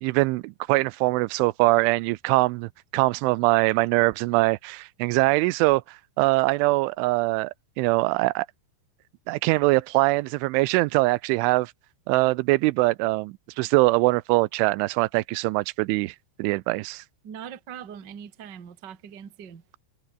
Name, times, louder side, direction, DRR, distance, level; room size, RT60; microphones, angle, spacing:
voice 1, 0.0-5.8 6.2-8.5 9.3-11.7 12.1-17.0, right 22 dB, 90° right, 3.1 m, -23 dB
voice 2, 17.2-19.6, right 8 dB, 45° right, 1.4 m, -41 dB
omnidirectional pair, 5.4 m